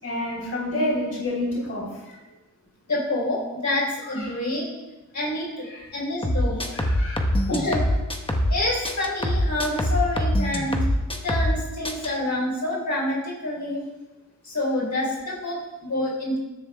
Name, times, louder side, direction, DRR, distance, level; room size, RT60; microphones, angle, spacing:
voice 1, 0.0-2.2 4.1-4.4 5.7-5.9 6.5-7.4 10.5-10.7, left 1 dB, 50° left, -5 dB, 3.7 m, -30 dB
voice 2, 2.9-4.7 5.1-5.7 5.9-6.6 7.5-7.9 8.5-10.8 11.2-13.8 14.4-16.4, left 1 dB, 70° left, -4 dB, 4.3 m, -27 dB
sound 1, 6.2-8.6 8.8-11.6 11.8-12.1, equal, 20° left, 1.2 m, -23 dB
20.5 x 10.5 x 2.3 m, 1.1 s
wide cardioid pair, 105°, 30 cm